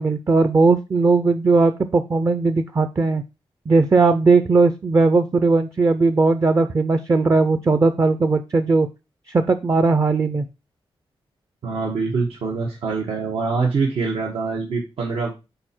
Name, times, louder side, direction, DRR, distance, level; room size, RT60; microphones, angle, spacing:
voice 1, 0.0-3.2 3.7-8.9 9.3-10.5, right 3 dB, 30° right, 9 dB, 0.5 m, -18 dB
voice 2, 11.6-15.3, right 4 dB, 85° right, -2 dB, 1.5 m, -24 dB
6.7 x 4.3 x 4.3 m, 0.27 s
wide cardioid pair, 140°, 10 cm